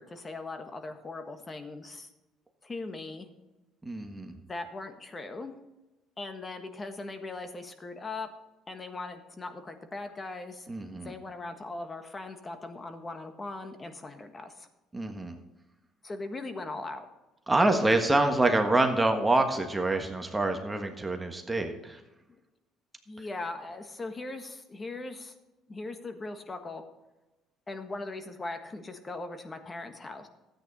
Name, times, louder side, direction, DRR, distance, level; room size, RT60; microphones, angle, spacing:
voice 1, 0.0-2.1 2.6-3.3 4.5-5.5 6.2-8.3 8.7-10.7 11.0-14.7 16.0-17.1 22.3-22.4 23.1-25.3 25.7-26.8 27.7-30.3, left 3 dB, 25° left, 7 dB, 1.5 m, -39 dB
voice 2, 3.8-4.3 10.7-11.1 14.9-15.4 17.5-22.0, right 2 dB, 15° right, 4 dB, 1.5 m, -26 dB
13.5 x 8.9 x 4.2 m, 1.0 s
cardioid pair, 95°, 0 cm